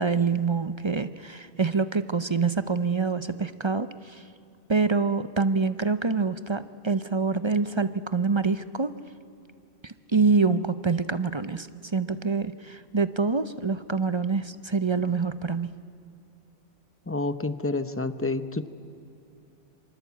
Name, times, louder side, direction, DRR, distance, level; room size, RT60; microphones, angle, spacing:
voice 1, 0.0-4.2 4.7-8.9 9.8-15.7, right 4 dB, 30° right, 13 dB, 0.6 m, -26 dB
voice 2, 17.1-18.7, left 2 dB, 15° left, 12 dB, 0.8 m, -29 dB
27.0 x 25.0 x 8.3 m, 2.8 s
omnidirectional pair, 1.1 m